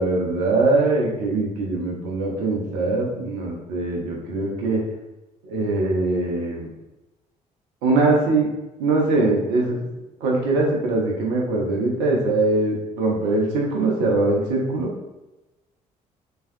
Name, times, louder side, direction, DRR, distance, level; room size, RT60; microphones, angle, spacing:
voice 1, 0.0-4.8 5.4-6.7 7.8-8.5 8.8-9.8 10.2-14.9, right 2 dB, 65° right, -1 dB, 0.7 m, -22 dB
3.4 x 3.2 x 2.6 m, 1.0 s
figure-of-eight pair, 45°, 19 cm